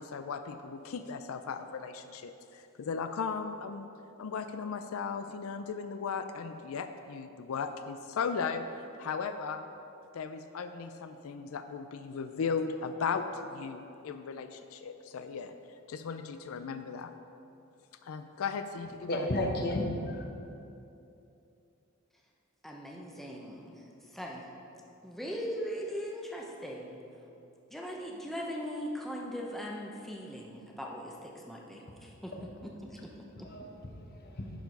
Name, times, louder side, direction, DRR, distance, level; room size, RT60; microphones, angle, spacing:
voice 1, 0.0-3.9 4.2-8.6 9.0-9.7 10.1-15.5 15.9-17.1 18.0-19.3, left 5 dB, 85° left, 9 dB, 0.4 m, -36 dB
voice 2, 19.1-20.2 33.4-34.5, left 1 dB, 45° left, 2 dB, 1.0 m, -33 dB
voice 3, 22.6-24.5 25.0-27.0 27.7-32.3 32.6-33.5, equal, ahead, -1 dB, 0.8 m, -40 dB
10.5 x 4.7 x 5.2 m, 2.7 s
head